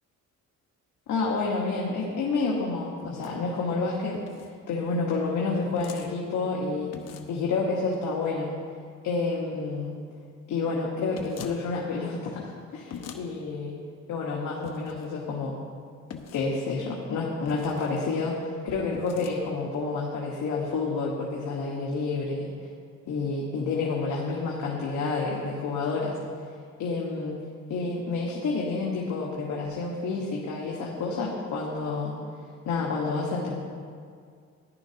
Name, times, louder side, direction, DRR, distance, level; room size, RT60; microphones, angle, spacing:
voice 1, 1.1-4.2 4.7-6.9 7.3-8.5 9.0-10.0 10.5-13.8 14.1-15.6 16.3-22.5 23.1-26.2 26.8-27.4 27.7-32.1 32.6-33.5, left 3 dB, 80° left, -4 dB, 1.5 m, -29 dB
sound 1, 3.0-3.4 4.1-4.5 5.8-6.1 6.9-7.4 11.1-11.6 12.9-13.2 14.6-15.1 16.1-16.5 17.5-18.0 18.9-19.4, left 7 dB, 60° left, 0.9 m, -42 dB
14.0 x 11.0 x 2.9 m, 2.2 s
cardioid pair, 115°, 29 cm